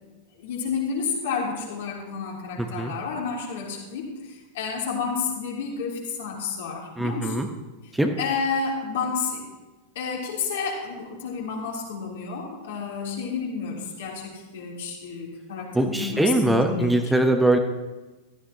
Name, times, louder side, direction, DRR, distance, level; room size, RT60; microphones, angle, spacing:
voice 1, 0.4-7.5 8.2-9.4 9.9-16.9, left 5 dB, 55° left, -2 dB, 3.4 m, -30 dB
voice 2, 2.6-2.9 7.0-7.5 7.9-8.1 15.7-17.6, right 1 dB, 5° right, 4 dB, 1.0 m, -22 dB
15.5 x 14.0 x 3.0 m, 1.2 s
figure-of-eight pair, 90°, 0 cm